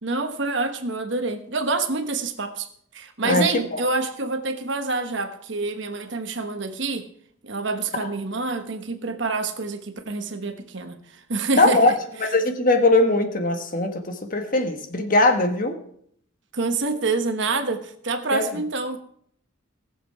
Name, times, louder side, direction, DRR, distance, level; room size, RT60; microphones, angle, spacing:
voice 1, 0.0-2.7 2.9-7.1 7.4-12.0 16.5-19.0, right 3 dB, 60° right, 1.2 m, -27 dB
voice 2, 11.6-11.9 12.2-15.8 18.3-18.4, left 2 dB, 40° left, 1.4 m, -20 dB
18.5 x 7.3 x 4.8 m
head